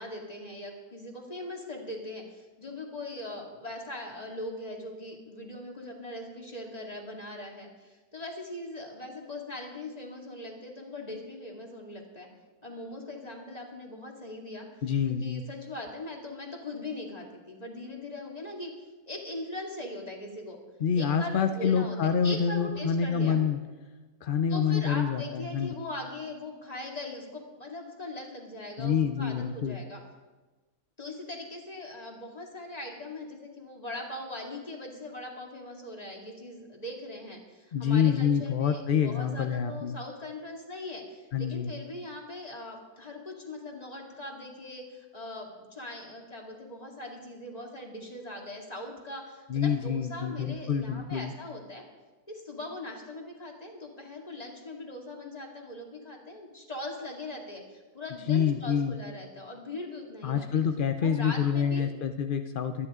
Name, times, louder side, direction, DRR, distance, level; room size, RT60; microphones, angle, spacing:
voice 1, 0.0-12.3 12.6-18.7 19.1-20.6 20.9-22.0 22.2-23.4 24.5-30.0 31.0-51.8 52.3-60.5 61.0-61.8, left 1 dB, 25° left, 0 dB, 2.3 m, -40 dB
voice 2, 14.8-15.4 20.8-23.6 24.2-25.7 28.8-29.8 37.7-40.0 41.3-41.7 49.5-51.3 58.3-58.9 60.2-62.9, left 7 dB, 55° left, 7 dB, 0.5 m, -27 dB
23.5 x 10.5 x 3.7 m, 1.2 s
omnidirectional pair, 1.6 m